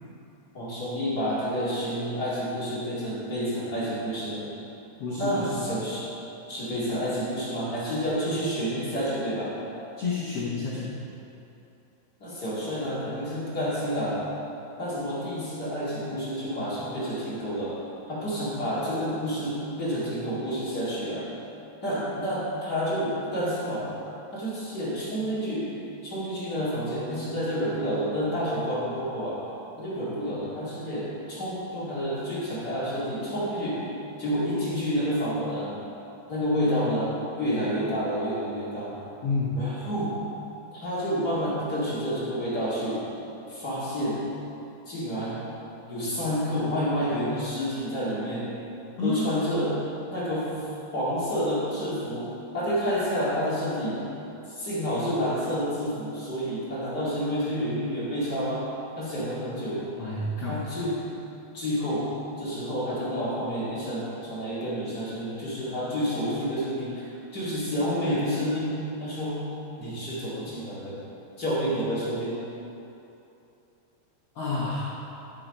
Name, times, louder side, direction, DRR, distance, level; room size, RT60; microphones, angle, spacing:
voice 1, 0.5-4.5 5.2-6.0 6.5-9.5 12.2-14.2 14.8-17.8 18.1-21.3 21.8-23.9 24.3-25.7 26.0-29.4 29.8-33.8 34.2-35.8 36.3-39.0 39.5-40.2 40.7-43.0 43.5-44.2 44.9-45.4 45.9-48.5 49.0-49.8 50.1-50.7 50.9-54.0 54.5-58.7 59.0-59.9 60.5-61.0 61.5-62.1 62.4-67.1 67.3-69.4 69.8-71.0 71.4-72.4, equal, 30° left, -10 dB, 2.2 m, -29 dB
voice 2, 5.0-5.7 10.0-11.0 39.2-39.6 49.0-49.2 59.5-59.6 60.0-60.6 74.3-74.9, left 3 dB, 80° left, -7 dB, 1.3 m, -29 dB
12.5 x 6.0 x 5.3 m, 2.9 s
omnidirectional pair, 4.6 m